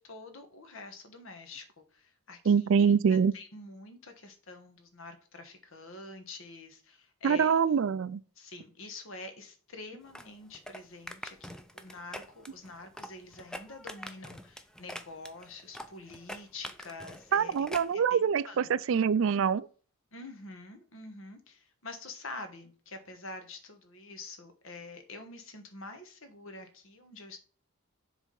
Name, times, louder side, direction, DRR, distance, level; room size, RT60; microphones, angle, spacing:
voice 1, 0.0-1.7 1.9-7.5 8.4-18.7 20.1-27.4, left 3 dB, 65° left, 1.3 m, -47 dB
voice 2, 2.5-3.3 7.2-8.2 17.3-19.7, right 6 dB, 65° right, 0.4 m, -25 dB
sound 1, 10.1-17.9, equal, 5° left, 0.4 m, -45 dB
7.2 x 3.4 x 5.4 m
head